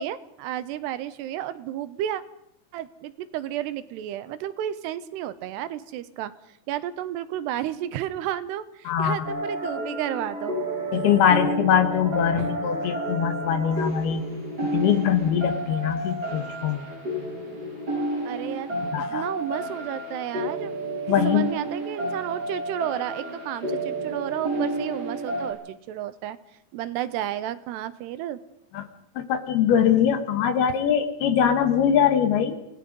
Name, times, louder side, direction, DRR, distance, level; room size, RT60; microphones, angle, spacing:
voice 1, 0.0-2.2 2.7-10.6 12.4-12.5 18.2-20.8 21.1-26.4 26.7-28.4, right 12 dB, 80° right, 14 dB, 3.0 m, -32 dB
voice 2, 8.9-9.2 10.9-14.3 14.6-16.9 18.9-19.2 21.1-21.5 28.7-28.9 29.2-32.6, left 9 dB, 70° left, 9 dB, 3.3 m, -22 dB
sound 1, 9.2-25.5, right 1 dB, 20° right, 7.8 m, -31 dB
29.5 x 18.5 x 5.3 m, 0.78 s
omnidirectional pair, 4.9 m